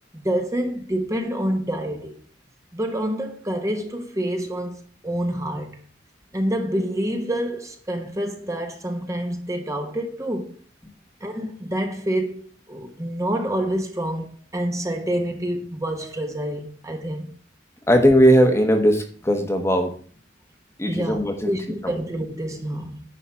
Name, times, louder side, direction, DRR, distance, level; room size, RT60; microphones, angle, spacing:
voice 1, 0.2-2.2 2.7-5.8 6.3-10.5 11.2-12.4 12.7-17.3 20.9-23.0, right 1 dB, 15° right, 1.2 m, -27 dB
voice 2, 17.9-19.9 20.8-21.5 21.8-21.9, equal, 15° left, 1.2 m, -18 dB
9.9 x 4.1 x 7.0 m
head